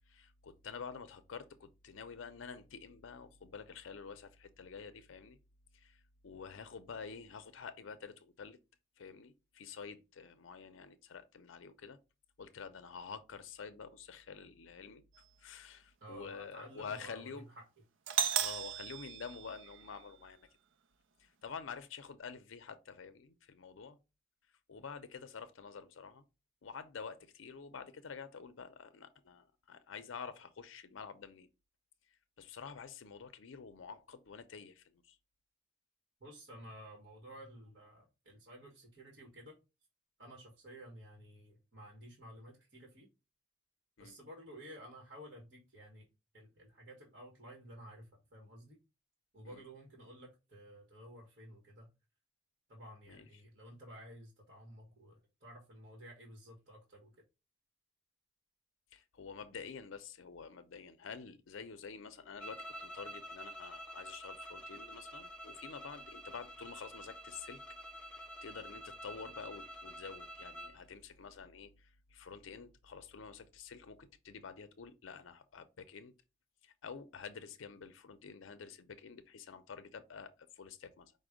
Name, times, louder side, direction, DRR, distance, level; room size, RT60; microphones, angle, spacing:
voice 1, 0.1-5.4 5.7-8.6 9.0-12.0 12.4-15.0 15.4-17.5 18.4-20.5 21.2-24.0 24.7-26.2 26.6-31.5 32.4-35.2 44.0-44.2 49.4-49.6 53.1-53.3 58.9-67.6 68.0-76.1 76.6-81.1, left 5 dB, 85° left, 0.5 m, -48 dB
voice 2, 16.0-17.7 36.2-39.5 40.2-43.1 44.0-46.1 46.3-48.8 49.3-51.9 52.7-57.1, equal, 55° right, 1.3 m, -53 dB
Doorbell, 18.1-20.1, right 9 dB, 80° right, 0.5 m, -35 dB
sound 1, 62.4-70.8, equal, 5° left, 0.6 m, -48 dB
5.1 x 2.1 x 4.8 m
head